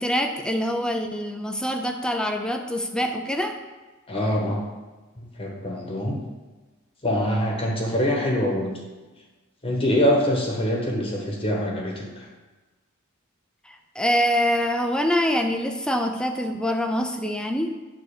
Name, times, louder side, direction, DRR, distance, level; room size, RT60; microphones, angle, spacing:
voice 1, 0.0-3.6 14.0-17.7, equal, 5° left, 5 dB, 0.5 m, -25 dB
voice 2, 4.1-4.6 5.2-6.2 7.0-8.8 9.6-12.3, equal, 25° left, -1 dB, 1.2 m, -24 dB
9.4 x 4.0 x 6.6 m, 1.2 s
head